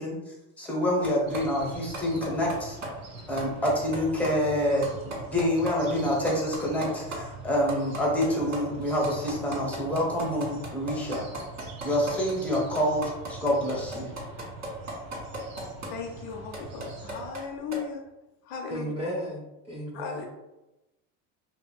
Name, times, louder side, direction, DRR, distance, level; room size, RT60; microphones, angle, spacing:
voice 1, 0.0-2.8 3.3-11.2 11.8-14.1, left 1 dB, 5° left, -4 dB, 0.9 m, -27 dB
sound 1, 1.0-1.4 1.7-2.5 2.8-2.9 3.2-4.0 4.2-4.3 4.6-5.7 6.0-6.1 6.3-7.2 7.5-15.9 16.3-17.4 17.7-17.8, right 2 dB, 35° right, 1.3 m, -36 dB
sound 2, 1.3-17.3, right 3 dB, 50° right, 0.7 m, -44 dB
voice 2, 15.9-18.0 18.4-18.9 19.9-20.3, left 6 dB, 50° left, 2 dB, 0.5 m, -37 dB
voice 3, 18.7-20.3, equal, 15° right, -4 dB, 0.4 m, -34 dB
2.8 x 2.7 x 2.2 m, 0.96 s
supercardioid pair, 95°, 45 cm